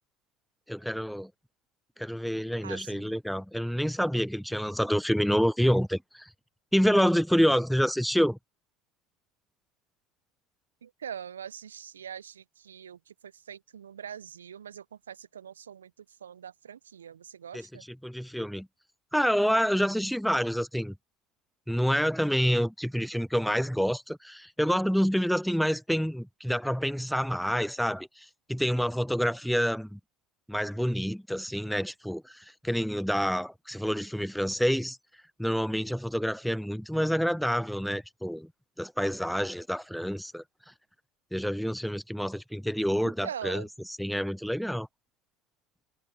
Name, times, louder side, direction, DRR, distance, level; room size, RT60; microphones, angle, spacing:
voice 1, 0.7-1.3 2.0-6.3 6.7-8.4 17.5-17.7 18.0-18.7 19.1-21.0 21.7-30.0 30.5-35.0 35.4-38.5 38.8-40.4 41.3-43.6 44.0-44.9, equal, ahead, 0.4 m, -28 dB
voice 2, 2.6-3.1 10.8-17.9 43.0-43.7, right 8 dB, 80° right, 0.9 m, -43 dB
figure-of-eight pair, 65°, 0 cm